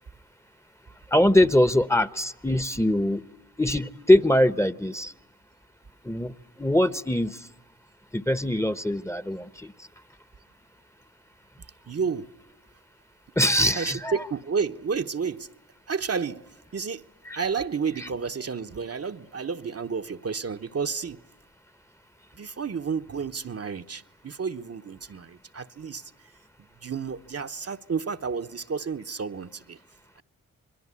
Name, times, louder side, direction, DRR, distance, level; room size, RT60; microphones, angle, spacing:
voice 1, 1.1-3.2 3.6-5.1 6.0-7.5 8.1-9.7 13.4-14.1, left 1 dB, 10° left, 1.0 m, -22 dB
voice 2, 11.9-12.3 13.6-15.5 15.9-17.0 17.3-21.2 22.3-26.3 26.8-29.8 30.2-30.3, right 5 dB, 45° right, 1.0 m, -31 dB
26.5 x 22.0 x 9.7 m
supercardioid pair, 40°, 35 cm